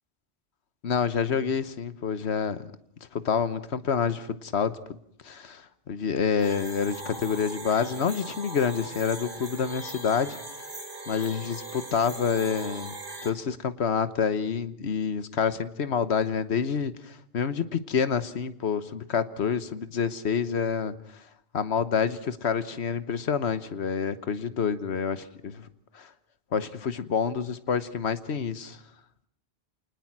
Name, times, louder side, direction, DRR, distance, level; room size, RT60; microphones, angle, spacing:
voice 1, 0.8-2.6 3.1-4.8 5.2-10.4 11.1-12.9 13.2-20.9 21.5-25.6 25.9-26.1 26.5-28.8, left 6 dB, 90° left, 12 dB, 1.3 m, -28 dB
sound 1, 6.4-13.3, right 2 dB, 50° right, 2.5 m, -40 dB
28.0 x 20.0 x 6.1 m, 0.72 s
omnidirectional pair, 1.1 m